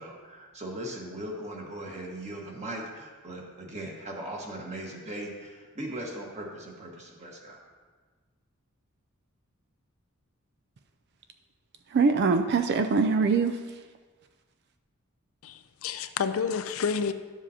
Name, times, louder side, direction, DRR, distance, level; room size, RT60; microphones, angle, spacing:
voice 1, 0.0-7.6, right 1 dB, 35° right, 1.5 m, -39 dB
voice 2, 11.9-13.9, right 4 dB, 50° right, 0.4 m, -24 dB
voice 3, 15.4-17.1, left 6 dB, 70° left, 0.5 m, -29 dB
12.0 x 7.2 x 2.8 m
head